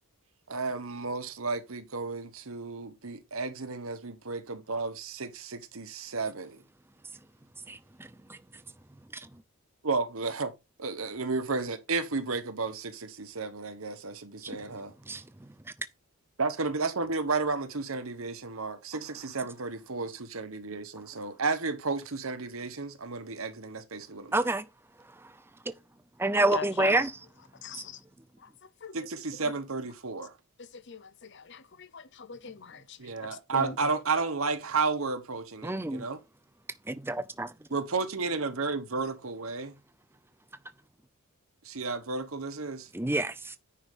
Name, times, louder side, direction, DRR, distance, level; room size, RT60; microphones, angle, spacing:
voice 1, 0.5-6.6 9.8-10.5 10.8-14.9 16.4-24.3 28.9-30.4 33.0-36.2 37.7-39.8 41.6-42.9, right 4 dB, 75° right, 1.2 m, -32 dB
voice 2, 24.3-24.6 26.2-27.1 27.7-27.8 35.6-36.0 36.9-37.5 42.9-43.6, right 2 dB, 10° right, 0.5 m, -27 dB
voice 3, 26.3-27.0 27.6-28.0 28.4-29.0 30.6-33.8, left 4 dB, 55° left, 0.7 m, -40 dB
9.8 x 3.7 x 5.4 m
head